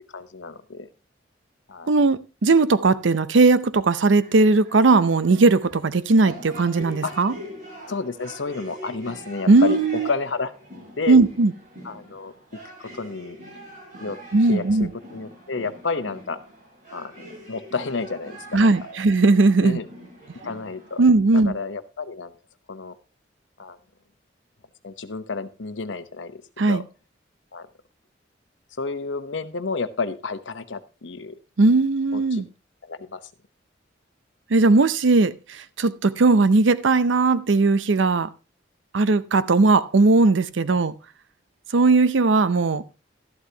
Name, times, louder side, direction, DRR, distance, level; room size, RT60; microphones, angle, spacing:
voice 1, 0.1-0.9 1.7-1.9 7.0-7.1 7.9-10.5 11.0-11.2 11.8-12.3 12.8-13.4 14.0-14.2 14.5-16.4 16.9-17.1 17.5-18.7 19.6-19.9 20.4-21.0 21.3-22.3 22.7-22.9 23.6-23.8 24.8-26.4 26.7-26.8 27.5-27.7 28.8-31.4 32.1-32.4 32.8-33.3 40.7-40.8, left 4 dB, 80° left, 0.9 m, -31 dB
voice 2, 1.9-7.3 9.5-10.1 11.1-11.5 14.3-14.9 18.5-19.8 21.0-21.6 26.6-26.8 31.6-32.5 34.5-38.3 38.9-41.0 41.7-42.8, right 3 dB, 85° right, 0.6 m, -18 dB
sound 1, 4.2-21.1, right 1 dB, 45° right, 7.8 m, -43 dB
12.5 x 11.5 x 2.9 m
head